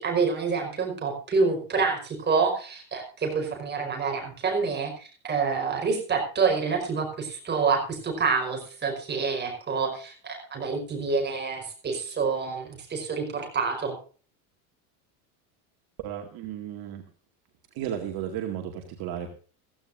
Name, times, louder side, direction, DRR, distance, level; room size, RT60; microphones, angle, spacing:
voice 1, 0.0-13.9, right 5 dB, 25° right, 3 dB, 5.0 m, -27 dB
voice 2, 16.0-17.1 17.7-19.3, right 10 dB, 55° right, 3 dB, 2.2 m, -34 dB
15.5 x 15.0 x 2.6 m, 0.39 s
supercardioid pair, 135°, 44 cm